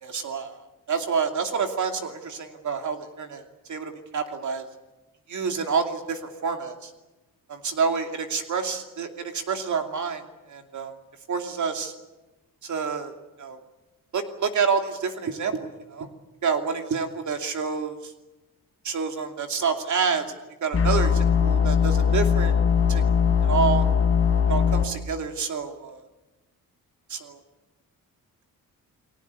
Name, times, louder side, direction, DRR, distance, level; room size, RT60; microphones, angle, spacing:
voice 1, 0.0-3.4 3.7-4.7 5.3-6.9 7.5-10.2 10.5-10.9 11.3-11.9 12.6-13.6 14.1-16.1 16.4-18.1 18.8-20.4 20.6-22.5 22.9-23.0 23.4-23.9 24.5-26.0 27.1-27.4, right 5 dB, 55° right, 5 dB, 2.7 m, -28 dB
sound 1, 20.7-24.8, left 7 dB, 40° left, 3.4 m, -20 dB
30.0 x 20.0 x 8.3 m, 1.1 s
wide cardioid pair, 150°, 35 cm